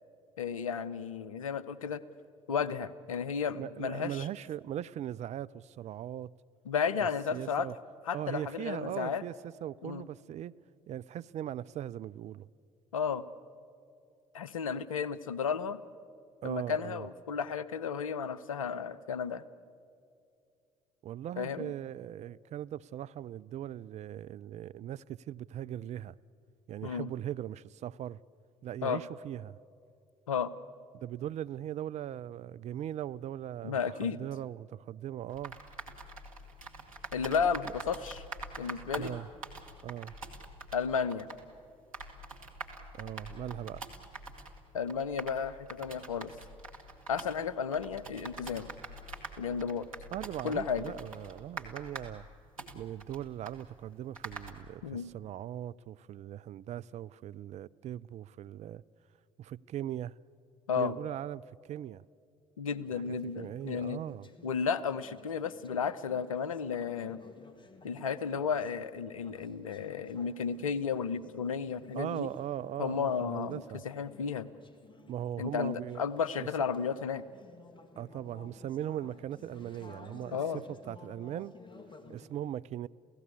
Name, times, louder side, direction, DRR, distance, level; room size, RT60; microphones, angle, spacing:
voice 1, 0.4-2.0 2.5-4.3 6.7-7.7 8.1-9.2 9.8-10.0 12.9-13.2 14.3-15.8 16.4-19.4 21.4-21.7 26.8-27.1 28.8-29.0 30.3-30.5 33.6-34.3 37.1-38.2 38.6-39.1 40.7-41.3 44.7-46.3 47.1-48.7 49.4-49.9 50.4-50.9 54.8-55.1 60.7-61.0 62.6-64.0 64.4-67.2 67.8-72.3 72.8-74.5 75.4-77.2 80.3-80.6, left 6 dB, 80° left, 0.7 m, -33 dB
voice 2, 3.5-6.3 7.0-7.8 8.1-9.3 9.6-10.5 10.9-12.5 16.4-17.1 21.0-26.2 26.7-28.2 28.6-29.6 30.9-35.6 37.6-37.7 39.0-39.3 39.8-40.1 42.9-43.8 50.1-52.3 52.7-58.8 59.4-60.1 60.8-62.0 62.9-64.3 71.9-73.8 75.1-76.0 76.4-76.5 78.0-80.4 80.7-81.5 82.1-82.9, right 11 dB, 40° right, 0.5 m, -39 dB
sound 1, 35.3-54.5, right 2 dB, 85° right, 1.7 m, -45 dB
Conversation / Chatter, 62.6-82.3, left 3 dB, 30° left, 2.2 m, -56 dB
29.0 x 16.5 x 8.5 m
figure-of-eight pair, 55°, 17 cm